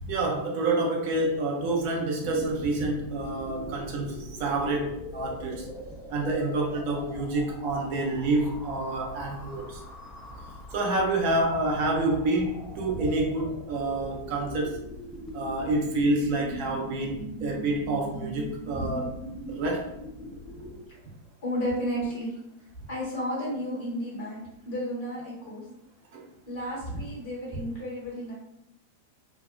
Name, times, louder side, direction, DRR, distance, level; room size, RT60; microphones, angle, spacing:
voice 1, 0.0-5.7 6.1-9.8 10.7-14.8 15.3-19.1 19.5-19.9 26.1-26.2, right 2 dB, 45° right, -1 dB, 0.6 m, -28 dB
sound 1, 2.3-20.8, equal, 10° left, 0.4 m, -41 dB
voice 2, 21.4-22.4 22.9-24.4 24.6-25.6 26.5-28.3, equal, 50° left, -6 dB, 1.3 m, -32 dB
2.5 x 2.0 x 2.4 m, 0.82 s
figure-of-eight pair, 90°, 0 cm